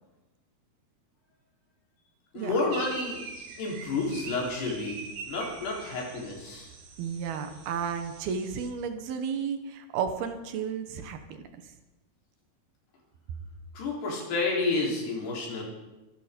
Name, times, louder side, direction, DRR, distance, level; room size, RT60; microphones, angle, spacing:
voice 1, 2.3-3.2 3.6-5.0 5.3-6.7 13.7-15.6, left 3 dB, 80° left, -2 dB, 6.0 m, -30 dB
sound 1, 2.7-8.7, right 5 dB, 55° right, 3.0 m, -44 dB
voice 2, 7.0-11.7, right 7 dB, 75° right, 8 dB, 3.1 m, -33 dB
23.5 x 11.0 x 5.2 m, 1.0 s
omnidirectional pair, 4.6 m